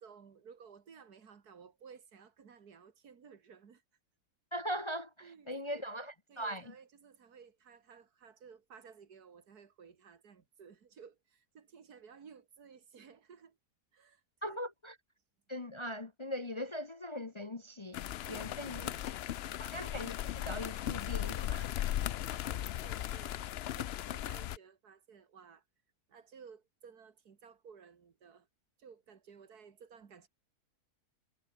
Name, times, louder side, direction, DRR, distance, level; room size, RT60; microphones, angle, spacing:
voice 1, 0.0-3.8 5.2-5.8 6.3-13.6 13.9-14.6 18.3-19.1 19.5-19.6 22.3-23.4 23.7-25.6 26.1-28.5 28.8-30.3, right 6 dB, 90° right, 2.3 m, -56 dB
voice 2, 4.5-6.7 14.4-14.9 15.5-18.8 19.6-21.7, equal, 30° left, 0.6 m, -40 dB
sound 1, 17.9-24.6, left 12 dB, 70° left, 0.6 m, -37 dB
omnidirectional pair, 1.6 m